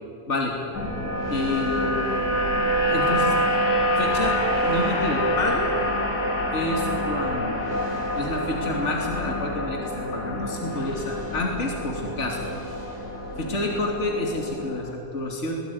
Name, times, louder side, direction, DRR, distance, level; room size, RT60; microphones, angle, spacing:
sound 1, 0.7-14.9, equal, 75° left, 3.6 m, -26 dB
sound 2, 0.8-13.6, equal, 25° right, 3.4 m, -42 dB
voice 1, 1.3-2.2 2.9-3.3 4.0-4.4 4.6-5.7 6.5-12.4 13.4-15.5, left 2 dB, 45° left, 0 dB, 3.3 m, -28 dB
22.0 x 18.5 x 9.6 m, 2.8 s
omnidirectional pair, 1.7 m